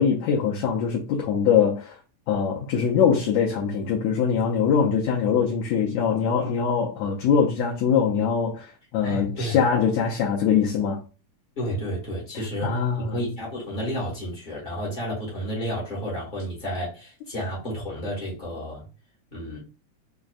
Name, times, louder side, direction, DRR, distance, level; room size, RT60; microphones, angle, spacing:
voice 1, 0.0-1.9 2.3-11.0 12.6-13.1, left 7 dB, 75° left, 1.7 m, -23 dB
voice 2, 9.0-9.6 11.6-18.9 19.3-19.6, equal, 60° left, 0.5 m, -31 dB
6.0 x 2.1 x 2.4 m
omnidirectional pair, 3.6 m